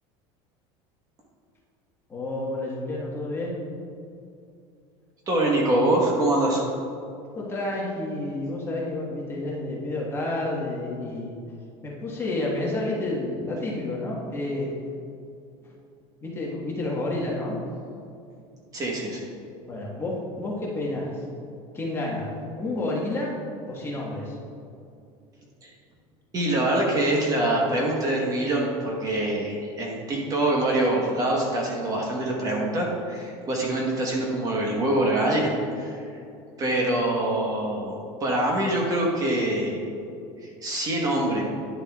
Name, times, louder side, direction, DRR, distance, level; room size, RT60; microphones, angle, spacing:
voice 1, 2.1-3.6 7.3-11.3 11.8-14.7 16.2-17.6 19.7-21.2 21.7-22.3 22.5-23.4 23.7-24.4, left 2 dB, 20° left, -4 dB, 1.4 m, -30 dB
voice 2, 5.3-6.6 18.7-19.2 25.6-25.7 26.3-36.0 36.6-37.9 38.2-39.8 40.4-41.4, right 1 dB, 25° right, -2 dB, 1.2 m, -24 dB
11.0 x 6.7 x 2.4 m, 2.5 s
cardioid pair, 140°, 13 cm